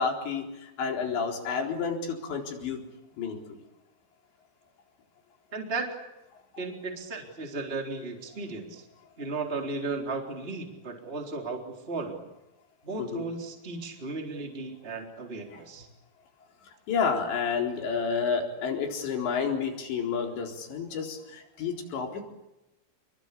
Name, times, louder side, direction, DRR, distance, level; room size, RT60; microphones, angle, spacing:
voice 1, 0.0-2.8 3.2-3.4 13.0-13.3 15.5-15.6 16.9-22.2, left 5 dB, 80° left, 2 dB, 6.4 m, -30 dB
voice 2, 5.5-5.9 6.6-8.8 9.2-11.6 11.9-12.2 12.8-15.9, right 3 dB, 15° right, 2 dB, 3.6 m, -35 dB
29.5 x 22.5 x 8.5 m, 0.93 s
omnidirectional pair, 5.1 m